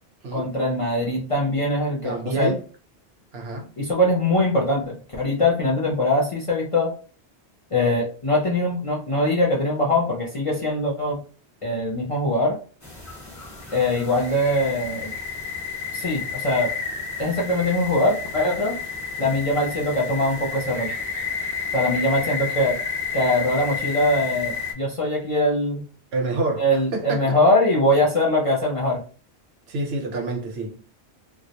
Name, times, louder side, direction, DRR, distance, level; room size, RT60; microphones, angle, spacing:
voice 1, 0.3-2.5 3.8-6.9 7.7-11.2 11.6-12.6 13.7-15.1 15.9-16.7 17.2-18.8 19.2-20.9 21.7-22.8 23.1-25.8 26.6-29.0, left 1 dB, 45° left, 0.4 m, -22 dB
voice 2, 2.0-2.6 3.3-3.7 26.1-27.4 29.7-30.9, right 2 dB, 70° right, 0.9 m, -28 dB
sound 1, 12.8-24.7, left 5 dB, 15° left, 0.7 m, -31 dB
2.2 x 2.0 x 2.7 m
omnidirectional pair, 1.1 m